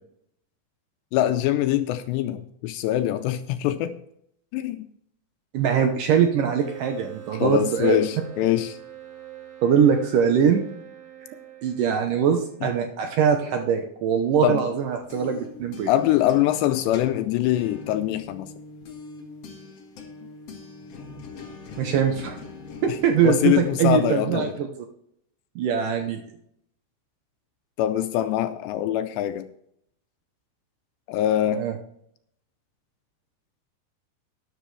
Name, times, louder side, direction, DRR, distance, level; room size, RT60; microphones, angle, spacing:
voice 1, 1.1-4.0 4.5-4.9 7.4-8.8 12.6-12.7 14.4-14.6 15.9-18.5 22.9-23.0 23.2-24.6 27.8-29.5 31.1-31.7, left 12 dB, 85° left, 9 dB, 2.7 m, -23 dB
voice 2, 5.5-8.0 9.6-10.6 11.6-15.9 21.8-22.4 22.8-24.7 25.6-26.2 31.6-31.7, right 7 dB, 80° right, 5 dB, 1.9 m, -22 dB
sound 1, 6.6-13.0, right 12 dB, 35° right, 4.6 m, -43 dB
sound 2, 14.8-24.4, left 3 dB, 55° left, 1.7 m, -42 dB
13.0 x 10.5 x 3.3 m, 0.71 s
omnidirectional pair, 5.0 m